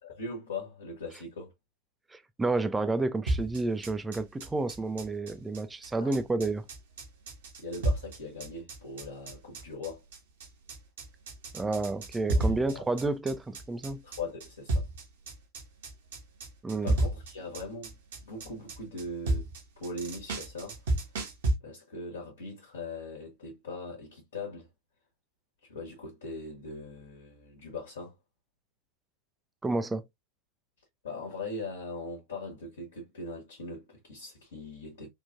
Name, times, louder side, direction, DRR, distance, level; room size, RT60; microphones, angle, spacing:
voice 1, 0.2-1.5 6.0-6.1 7.6-10.0 12.3-12.9 14.0-14.9 16.8-19.5 19.8-20.9 21.6-24.7 25.6-28.2 31.0-35.1, left 2 dB, 60° left, 1.3 m, -40 dB
voice 2, 2.1-6.6 11.5-14.0 16.6-16.9 29.6-30.0, right 3 dB, 10° right, 0.4 m, -30 dB
sound 1, 3.3-21.5, right 1 dB, 60° right, 1.1 m, -32 dB
3.6 x 2.5 x 2.5 m
figure-of-eight pair, 90°, 0 cm